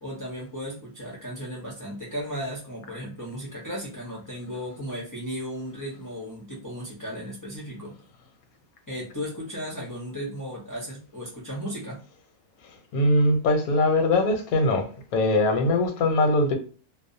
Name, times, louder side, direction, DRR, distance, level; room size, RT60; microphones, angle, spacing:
voice 1, 0.0-7.9 8.9-12.0, equal, 30° left, 0.3 m, -35 dB
voice 2, 12.9-14.9 15.1-16.5, left 2 dB, 90° left, 1.1 m, -21 dB
2.5 x 2.0 x 2.6 m
omnidirectional pair, 1.5 m